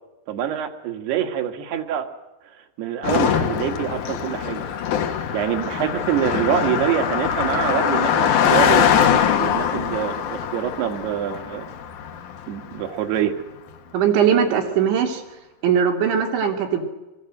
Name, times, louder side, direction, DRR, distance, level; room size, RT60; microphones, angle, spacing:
voice 1, 0.3-2.1 2.8-4.6 5.3-11.7 12.5-13.3, right 9 dB, 70° right, 6 dB, 3.7 m, -25 dB
Car passing by, 3.0-12.6, left 9 dB, 60° left, 2.3 m, -22 dB
voice 2, 13.9-15.2 15.6-16.9, right 8 dB, 90° right, 3 dB, 5.3 m, -20 dB
25.0 x 23.0 x 7.9 m, 1.1 s
omnidirectional pair, 5.1 m